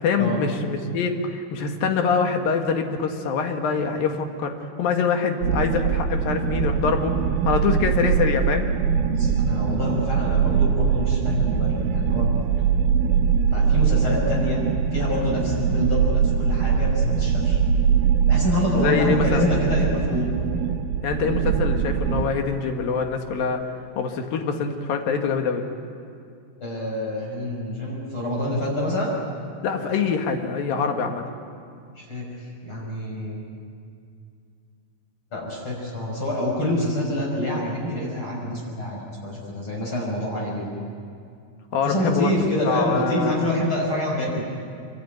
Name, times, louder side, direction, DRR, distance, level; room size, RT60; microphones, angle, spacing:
voice 1, 0.0-7.1 7.5-8.7 18.8-19.5 21.0-23.6 24.0-25.6 29.6-31.2 41.7-42.3 42.7-43.3, left 5 dB, 75° left, 4 dB, 3.5 m, -24 dB
sound 1, 5.4-22.3, right 7 dB, 80° right, 3.0 m, -22 dB
voice 2, 9.2-12.3 13.5-14.6 14.9-17.6 18.3-20.4 26.6-29.1 32.0-32.3 32.6-33.4 35.3-40.7 41.8-44.4, left 1 dB, 35° left, -4 dB, 6.6 m, -26 dB
25.5 x 23.5 x 9.3 m, 2.4 s
omnidirectional pair, 4.2 m